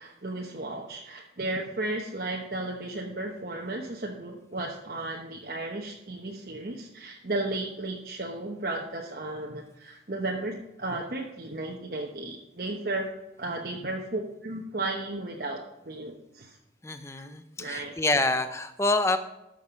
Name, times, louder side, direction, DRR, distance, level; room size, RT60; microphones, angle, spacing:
voice 1, 0.0-13.1 13.4-15.6 15.8-16.6 17.6-18.0, right 2 dB, 55° right, 0 dB, 1.0 m, -34 dB
voice 2, 16.8-19.2, left 2 dB, 15° left, 10 dB, 0.6 m, -27 dB
12.5 x 6.4 x 5.1 m, 0.89 s
head